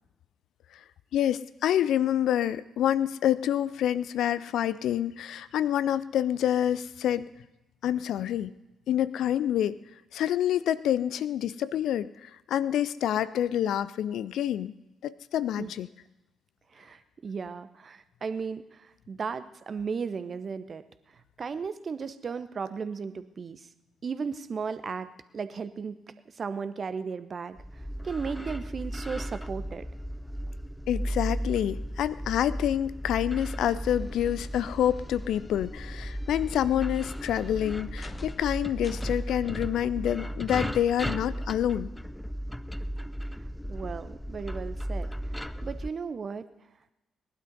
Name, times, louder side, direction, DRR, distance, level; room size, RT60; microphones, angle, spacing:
voice 1, 1.1-7.3 7.8-8.5 8.9-9.8 10.1-14.7 15.0-15.9 30.9-41.9, left 11 dB, 60° left, 17 dB, 0.4 m, -27 dB
voice 2, 16.7-20.8 21.4-23.7 24.0-25.1 25.3-26.0 26.3-27.6 28.0-29.8 43.7-45.1 45.6-46.5, right 5 dB, 40° right, 12 dB, 0.9 m, -35 dB
sound 1, 27.6-45.9, equal, 5° left, 0.6 m, -35 dB
sound 2, 33.6-39.5, left 3 dB, 25° left, 1.1 m, -51 dB
19.0 x 11.5 x 5.4 m, 0.97 s
figure-of-eight pair, 40°, 0 cm